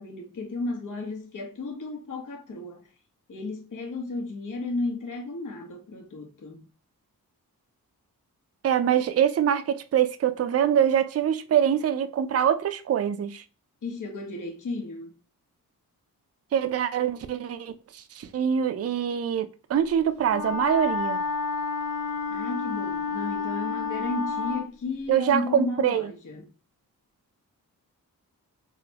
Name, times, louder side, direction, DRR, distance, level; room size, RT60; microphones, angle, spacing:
voice 1, 0.0-2.8 3.3-6.7 13.8-15.1 22.3-26.5, left 3 dB, 55° left, 1.0 m, -34 dB
voice 2, 8.6-13.4 16.5-21.2 25.1-26.1, right 9 dB, 40° right, 0.4 m, -24 dB
Wind instrument woodwind instrument, 20.3-24.7, left 4 dB, 75° left, 1.5 m, -30 dB
3.9 x 2.1 x 2.8 m
cardioid pair, 70°, 37 cm